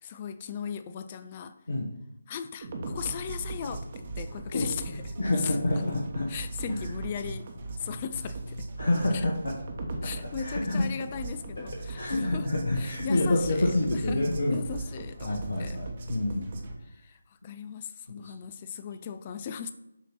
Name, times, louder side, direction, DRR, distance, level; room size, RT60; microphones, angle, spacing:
voice 1, 0.0-1.6 2.3-6.0 6.3-8.7 9.1-9.3 10.0-12.5 12.8-14.2 14.5-15.8 16.8-19.7, left 7 dB, 25° left, 0.3 m, -38 dB
sound 1, 2.6-16.7, right 2 dB, 40° right, 1.1 m, -38 dB
voice 2, 5.2-6.3 6.8-6.9 8.8-9.5 10.2-10.9 11.6-11.7 11.9-14.6 15.2-16.5, left 2 dB, 65° left, 1.1 m, -27 dB
7.0 x 2.9 x 5.8 m
figure-of-eight pair, 155°, 0 cm